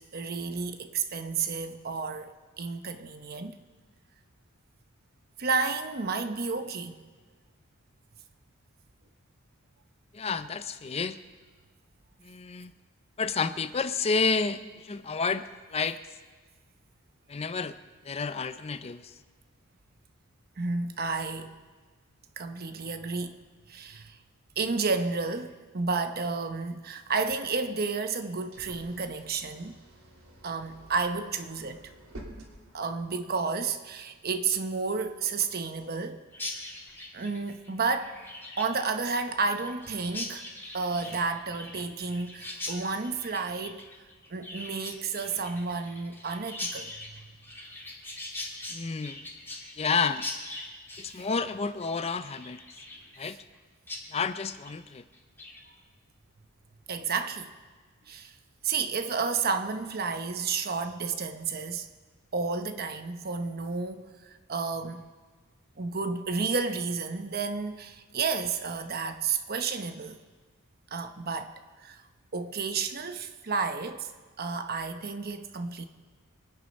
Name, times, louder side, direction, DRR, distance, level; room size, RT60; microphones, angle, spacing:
voice 1, 0.0-3.6 5.4-6.9 20.6-21.5 22.4-23.3 23.7-24.2 24.6-29.8 30.4-31.8 32.7-36.2 37.1-38.1 38.6-40.4 40.7-43.8 44.3-47.2 53.2-53.4 56.9-57.5 58.1-58.3 58.6-61.9 62.3-65.0 65.8-70.2 70.9-71.5 71.8-72.0 72.3-74.1 74.4-75.9, right 4 dB, 45° right, 0.8 m, -31 dB
voice 2, 10.1-11.2 12.2-12.7 13.2-16.0 17.3-17.8 18.0-19.1 48.7-49.2 49.8-50.3 51.0-52.6 53.2-53.4 54.1-55.0, left 4 dB, 30° left, 0.5 m, -30 dB
sound 1, 27.0-33.3, right 1 dB, 85° right, 3.0 m, -50 dB
Chirp tweet, 36.3-53.6 53.9-54.0 54.4-54.8 55.1-55.6, left 2 dB, 10° left, 2.3 m, -41 dB
24.0 x 9.8 x 5.3 m
head